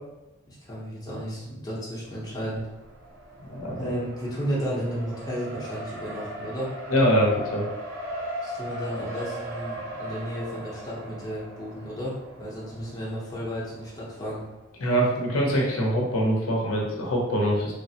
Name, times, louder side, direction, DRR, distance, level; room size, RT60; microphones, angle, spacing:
voice 1, 0.5-2.6 3.7-6.7 8.4-14.4, equal, 20° left, -8 dB, 0.7 m, -33 dB
Race car auto racing, 2.0-14.7, right 1 dB, 60° right, 0.6 m, -39 dB
voice 2, 3.5-3.9 6.9-7.6 14.8-17.7, equal, 85° left, -2 dB, 0.7 m, -23 dB
3.1 x 2.0 x 2.7 m, 0.97 s
head